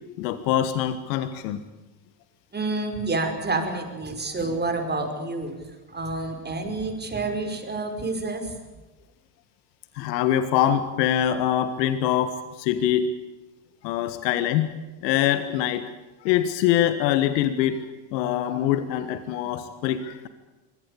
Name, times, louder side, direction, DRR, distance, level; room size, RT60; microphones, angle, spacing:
voice 1, 0.2-1.6 9.9-13.1 13.8-14.7 15.0-15.9 16.2-20.3, left 11 dB, 90° left, 11 dB, 1.6 m, -24 dB
voice 2, 2.5-5.5 5.9-8.5, right 3 dB, 20° right, 5 dB, 5.6 m, -28 dB
24.0 x 18.0 x 8.5 m, 1.2 s
supercardioid pair, 105°, 48 cm